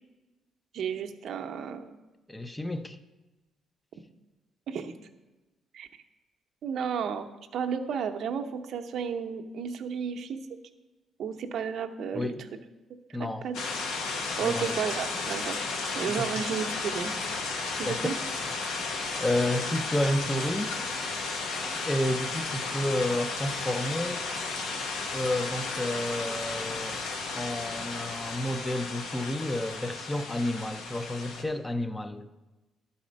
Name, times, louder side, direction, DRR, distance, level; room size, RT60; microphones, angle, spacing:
voice 1, 0.7-2.0 4.7-4.9 5.7-5.9 6.6-10.4 11.2-12.3 13.2-13.6 14.0-15.6 16.0-17.1 17.8-18.1, right 7 dB, 70° right, 0.6 m, -33 dB
voice 2, 2.3-3.0 12.1-12.4 13.1-13.5 14.4-14.8 16.1-16.3 17.8-18.1 19.2-20.8 21.8-24.4 25.1-27.0 27.3-32.3, left 1 dB, 15° left, 0.5 m, -30 dB
sound 1, 13.5-31.4, left 3 dB, 90° left, 1.0 m, -34 dB
12.0 x 4.2 x 5.2 m
cardioid pair, 90°, 0 cm